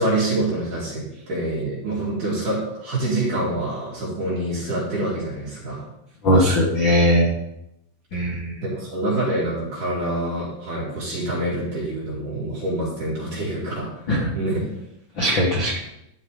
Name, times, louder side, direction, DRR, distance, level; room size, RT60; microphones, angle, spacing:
voice 1, 0.0-5.9 8.6-14.1 14.3-14.6, right 1 dB, 50° right, -6 dB, 4.4 m, -26 dB
voice 2, 6.2-7.3 8.1-8.6 14.1-14.3 15.2-15.8, equal, 90° left, -2 dB, 1.0 m, -19 dB
12.5 x 5.6 x 5.0 m, 0.82 s
omnidirectional pair, 4.8 m